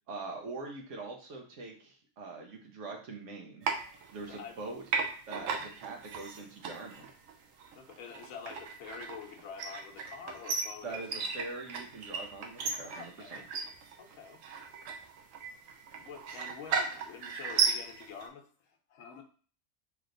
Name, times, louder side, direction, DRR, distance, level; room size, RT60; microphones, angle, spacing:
voice 1, 0.1-3.7 4.1-4.8 5.3-7.1 10.8-13.4, right 3 dB, 70° right, 1 dB, 1.2 m, -43 dB
sound 1, 3.6-4.6 4.9-18.3, right 5 dB, 85° right, 1.0 m, -36 dB
voice 2, 4.0-4.6 5.3-5.7 7.7-11.0 12.8-13.5 14.0-14.4 16.0-19.2, left 6 dB, 85° left, 3 dB, 1.1 m, -47 dB
3.3 x 2.9 x 3.8 m, 0.41 s
omnidirectional pair, 1.3 m